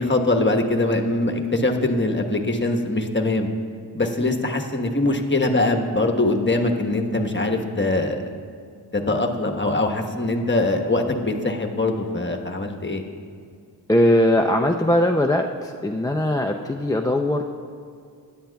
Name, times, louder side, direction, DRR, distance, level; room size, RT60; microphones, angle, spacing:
voice 1, 0.0-3.5 3.9-8.2 8.9-13.0, left 2 dB, 25° left, 3 dB, 1.2 m, -22 dB
voice 2, 13.9-17.4, left 1 dB, 10° left, 2 dB, 0.5 m, -20 dB
16.0 x 10.5 x 2.3 m, 2.3 s
cardioid pair, 40°, 41 cm